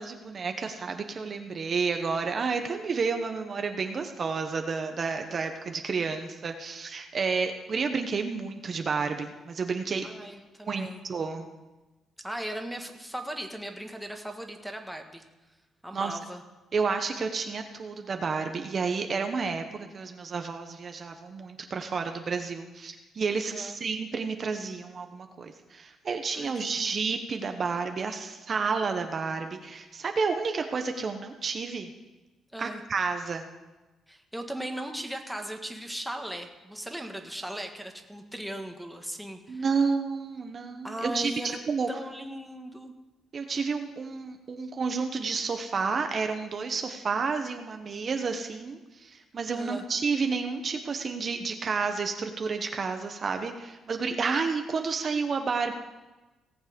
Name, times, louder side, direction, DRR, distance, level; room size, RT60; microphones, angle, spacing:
voice 1, 0.0-10.1 10.7-11.5 15.9-16.2 16.7-31.9 32.6-33.5 39.5-41.9 43.3-55.7, right 5 dB, 45° right, 6 dB, 1.0 m, -30 dB
voice 2, 10.0-11.0 12.2-15.2 15.8-16.4 23.5-23.8 26.3-27.0 32.5-32.8 34.1-39.6 40.8-41.6 41.9-42.9 49.5-49.9, right 1 dB, ahead, 3 dB, 1.5 m, -38 dB
18.0 x 7.3 x 5.2 m, 1.1 s
cardioid pair, 90°, 0 cm